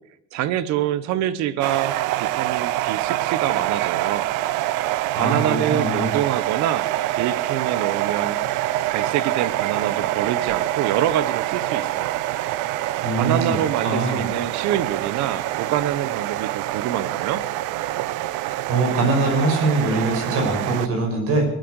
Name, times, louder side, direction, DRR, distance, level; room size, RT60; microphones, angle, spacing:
voice 1, 0.3-4.3 5.1-8.4 8.9-12.2 13.1-17.4, right 11 dB, 65° right, 16 dB, 1.0 m, -26 dB
sound 1, 1.6-20.9, right 15 dB, 85° right, 0.7 m, -25 dB
voice 2, 5.1-6.1 13.0-13.6 13.8-14.3 18.7-21.5, right 3 dB, 50° right, 2 dB, 6.1 m, -22 dB
19.5 x 9.2 x 8.0 m, 0.78 s
cardioid pair, 175°, 30 cm